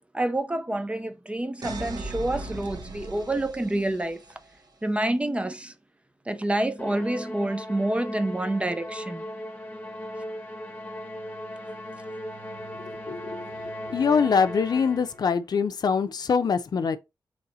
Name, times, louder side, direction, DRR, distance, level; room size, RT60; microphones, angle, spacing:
voice 1, 0.1-4.2 4.8-5.7 6.3-9.2, right 1 dB, 15° right, 0.4 m, -28 dB
sound 1, 1.6-4.5, right 2 dB, 60° right, 0.8 m, -38 dB
Musical instrument, 6.8-15.3, equal, 20° left, 1.0 m, -37 dB
voice 2, 12.8-13.4 13.9-17.0, left 6 dB, 60° left, 0.5 m, -24 dB
4.2 x 3.2 x 3.9 m
wide cardioid pair, 130°, 8 cm